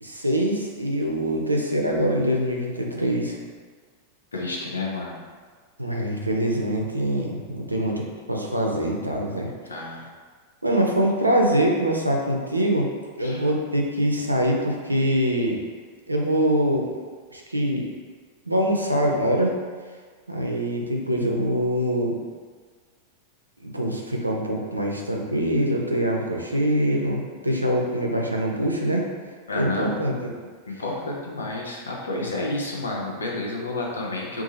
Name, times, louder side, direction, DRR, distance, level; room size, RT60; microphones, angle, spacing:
voice 1, 0.0-3.4 5.8-8.0 8.3-9.5 10.6-12.9 13.2-15.6 16.1-16.9 17.3-17.9 18.5-19.5 20.3-22.2 23.6-29.0 29.6-30.3, equal, 85° right, 0 dB, 0.4 m, -24 dB
voice 2, 4.3-5.2 9.6-10.1 13.2-13.5 29.5-29.9 30.7-34.4, left 2 dB, 75° left, -2 dB, 0.6 m, -30 dB
2.7 x 2.4 x 3.9 m, 1.5 s
figure-of-eight pair, 90°, 0 cm